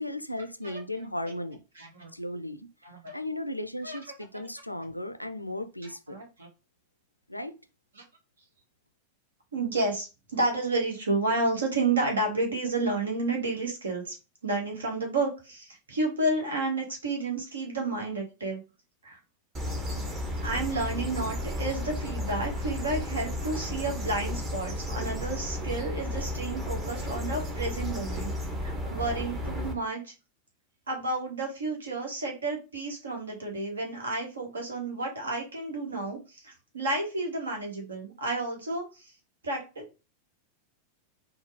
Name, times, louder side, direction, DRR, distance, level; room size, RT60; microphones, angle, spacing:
voice 1, 0.0-1.6 2.1-2.7 3.1-6.2 7.3-7.6, left 1 dB, 90° left, 0.4 m, -36 dB
voice 2, 1.8-2.1 2.8-3.1 3.8-4.0 4.3-4.5 6.1-6.5 8.0-8.1 9.5-14.1 14.4-18.6 19.0-19.2 20.4-28.3 28.6-30.1 30.9-39.1 39.4-39.8, right 2 dB, 70° right, 1.3 m, -31 dB
sound 1, 19.5-29.7, left 1 dB, 25° right, 1.0 m, -33 dB
4.3 x 2.3 x 3.1 m
figure-of-eight pair, 90°, 0 cm